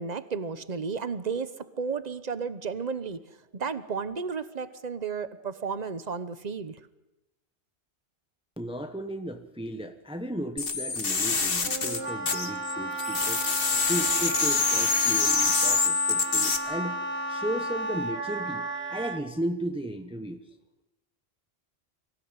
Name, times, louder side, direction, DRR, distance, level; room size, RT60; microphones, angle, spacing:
voice 1, 0.0-3.2 3.5-6.8, right 5 dB, 45° right, 13 dB, 1.1 m, -33 dB
voice 2, 8.6-13.5 13.9-17.0 17.3-20.4, right 1 dB, 5° right, 7 dB, 1.1 m, -35 dB
sound 1, 10.6-12.7 13.0-16.6, left 4 dB, 65° left, 1.7 m, -25 dB
Wind instrument woodwind instrument, 11.6-19.2, right 1 dB, 80° right, 1.9 m, -33 dB
24.5 x 16.0 x 9.8 m, 1.0 s
omnidirectional pair, 1.0 m